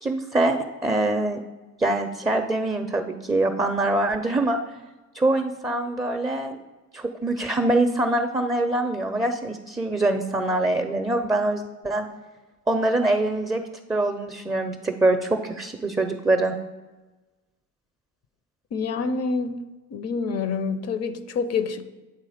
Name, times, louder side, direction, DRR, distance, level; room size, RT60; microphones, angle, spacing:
voice 1, 0.0-1.4 1.8-4.6 5.1-6.6 6.9-12.1 12.7-13.6 13.9-16.6, right 2 dB, 10° right, 4 dB, 0.4 m, -24 dB
voice 2, 18.7-19.5 19.9-21.8, left 5 dB, 55° left, 11 dB, 0.6 m, -27 dB
8.7 x 3.6 x 4.9 m, 1.2 s
cardioid pair, 90°, 30 cm